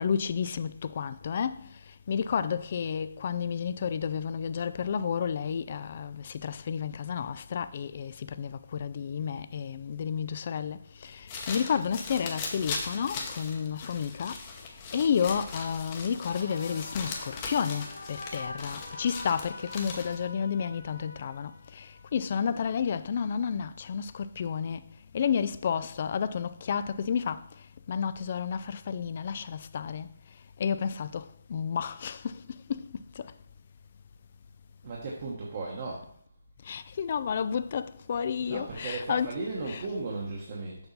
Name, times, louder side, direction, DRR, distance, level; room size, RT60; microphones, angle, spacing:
voice 1, 0.0-30.1 30.6-33.3 36.6-39.3 39.7-39.8, left 7 dB, 35° left, 0.3 m, -31 dB
sound 1, 11.1-20.3, left 4 dB, 20° left, 0.8 m, -39 dB
sound 2, 16.0-22.4, left 2 dB, 70° left, 1.5 m, -45 dB
voice 2, 34.8-36.1 38.4-40.8, right 3 dB, 35° right, 1.1 m, -36 dB
6.8 x 5.5 x 3.9 m
hypercardioid pair, 170°, 0 cm